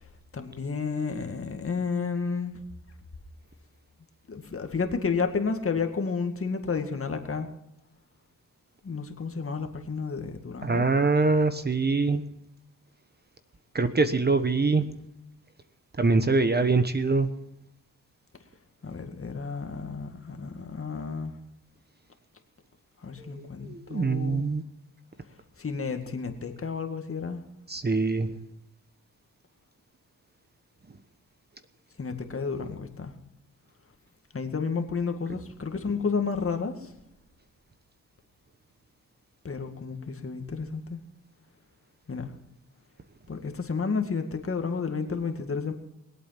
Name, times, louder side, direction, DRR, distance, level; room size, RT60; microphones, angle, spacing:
voice 1, 0.3-2.6 4.3-7.5 8.8-10.8 18.8-21.3 23.0-24.5 25.6-27.4 32.0-33.1 34.3-36.9 39.4-41.0 42.1-42.3 43.3-45.7, left 5 dB, 40° left, 5 dB, 2.1 m, -31 dB
voice 2, 10.6-12.2 13.7-14.9 16.0-17.3 23.3-24.6 27.7-28.3 32.6-32.7, right 3 dB, 30° right, 10 dB, 1.2 m, -24 dB
21.5 x 8.4 x 5.9 m, 0.85 s
cardioid pair, 75°, 34 cm